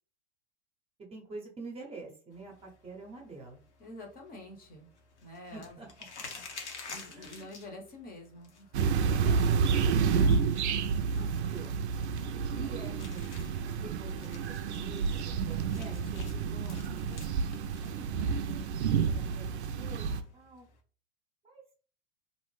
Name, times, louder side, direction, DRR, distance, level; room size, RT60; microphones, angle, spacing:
voice 1, 1.0-3.6 5.5-5.9 7.1-7.5 9.1-9.4 10.2-10.4 11.1-11.7 12.3-13.5 13.8-17.4 17.8-20.1 20.3-20.7 21.4-21.6, right 3 dB, 20° right, -1 dB, 0.7 m, -48 dB
sound 1, 2.3-20.8, left 4 dB, 85° left, 0.9 m, -52 dB
voice 2, 3.8-4.9 5.2-5.8 6.3-6.4 6.9-8.9 9.9-10.3, left 1 dB, 25° left, 2 dB, 0.7 m, -47 dB
sound 2, 8.7-20.2, right 6 dB, 75° right, 0.5 m, -30 dB
2.7 x 2.0 x 3.1 m, 0.39 s
hypercardioid pair, 100°, 34 cm